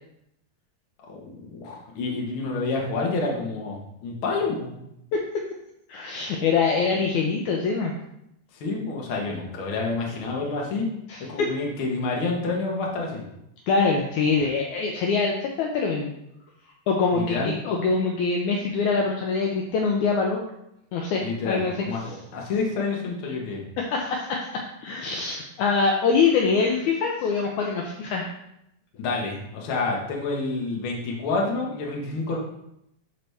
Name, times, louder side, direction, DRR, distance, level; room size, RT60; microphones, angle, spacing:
voice 1, 1.1-4.7 8.6-10.9 11.3-13.2 17.1-17.6 21.2-23.6 29.0-32.4, left 3 dB, 50° left, -1 dB, 1.7 m, -28 dB
voice 2, 5.1-5.4 5.9-7.9 11.1-11.5 13.7-16.1 16.9-20.4 20.9-22.2 23.8-28.3, left 4 dB, 75° left, 0 dB, 1.9 m, -24 dB
11.0 x 4.0 x 3.4 m, 0.80 s
omnidirectional pair, 3.9 m